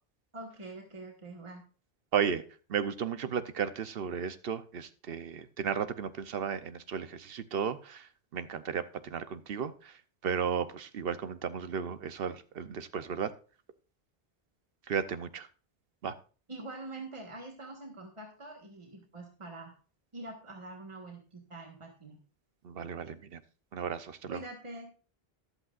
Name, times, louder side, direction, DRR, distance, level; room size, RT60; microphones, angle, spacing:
voice 1, 0.3-1.6 16.5-19.7 20.1-22.2 24.3-24.9, right 2 dB, 30° right, 1 dB, 1.6 m, -45 dB
voice 2, 2.1-2.4 2.7-13.3 14.9-15.5 16.0-16.1 22.6-23.4 23.7-24.4, right 7 dB, 70° right, 12 dB, 0.9 m, -34 dB
13.5 x 11.0 x 2.5 m, 0.38 s
omnidirectional pair, 1.0 m